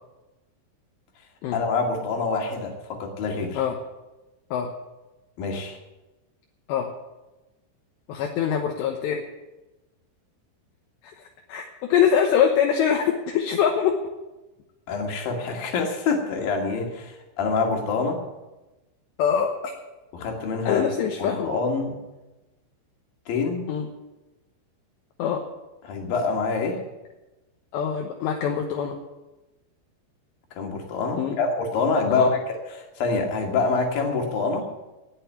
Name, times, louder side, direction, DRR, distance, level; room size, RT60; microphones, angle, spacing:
voice 1, 1.5-3.6 5.4-5.8 14.9-18.2 20.1-20.8 21.2-22.0 23.3-23.7 25.8-26.8 30.6-34.7, left 4 dB, 55° left, 2 dB, 3.5 m, -26 dB
voice 2, 8.1-9.2 11.2-13.9 19.2-19.5 20.7-21.6 23.7-23.9 25.2-25.4 27.7-29.0 31.2-31.4 32.1-32.3, left 8 dB, 75° left, 2 dB, 3.1 m, -23 dB
19.0 x 6.6 x 9.1 m, 1.1 s
omnidirectional pair, 5.4 m